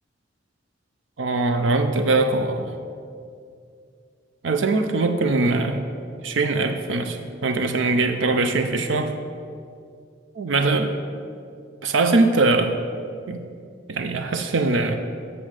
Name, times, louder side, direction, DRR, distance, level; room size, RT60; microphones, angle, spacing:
voice 1, 1.2-2.7 4.4-5.8 6.2-9.1 10.4-10.9 11.8-12.7 13.3-13.5 13.9-15.0, right 3 dB, 90° right, 7 dB, 0.5 m, -22 dB
7.8 x 6.3 x 6.5 m, 2.3 s
head